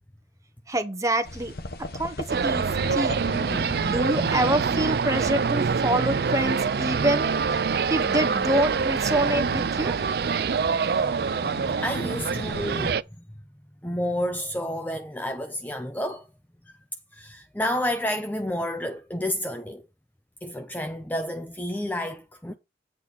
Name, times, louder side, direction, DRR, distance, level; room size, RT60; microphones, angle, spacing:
voice 1, 0.7-1.6 1.9-3.2 3.8-7.3 7.9-10.0, right 1 dB, 20° right, 1.0 m, -26 dB
sound 1, 1.2-12.9, left 2 dB, 55° left, 1.0 m, -38 dB
sound 2, 2.3-13.0, right 5 dB, 60° right, 0.4 m, -25 dB
voice 2, 11.8-13.0 13.8-16.3 17.1-19.8 20.4-22.5, left 1 dB, 10° left, 0.5 m, -30 dB
8.3 x 4.2 x 7.0 m
head